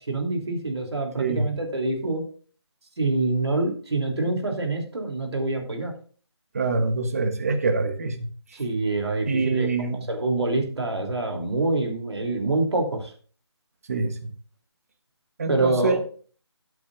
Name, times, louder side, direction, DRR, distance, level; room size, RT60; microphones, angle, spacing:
voice 1, 0.1-2.2 3.0-5.9 8.5-13.1 15.5-16.0, right 2 dB, 65° right, 2 dB, 3.0 m, -26 dB
voice 2, 1.2-1.5 6.5-8.3 9.3-10.1 13.9-14.1 15.4-16.0, right 3 dB, 30° right, 7 dB, 1.2 m, -25 dB
12.5 x 8.4 x 2.5 m, 0.41 s
figure-of-eight pair, 170°, 15 cm